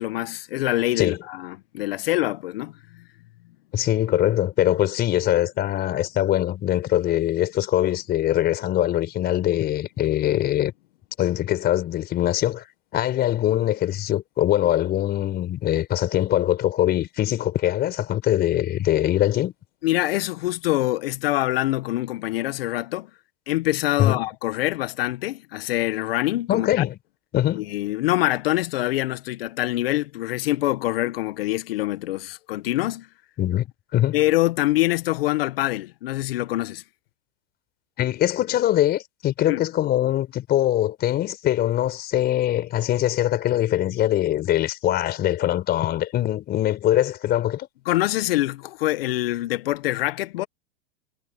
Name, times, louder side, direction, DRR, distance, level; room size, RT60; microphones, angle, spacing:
voice 1, 0.0-3.0 19.8-23.1 23.5-26.8 27.5-33.1 34.1-36.8 39.5-39.6 47.8-50.5, left 16 dB, 60° left, 1.6 m, -25 dB
voice 2, 3.7-10.7 11.2-12.6 12.9-19.5 24.0-24.2 26.5-27.0 27.3-27.6 33.4-33.7 33.9-34.2 38.0-47.7, left 13 dB, 30° left, 4.7 m, -22 dB
hypercardioid pair, 130°, 33 cm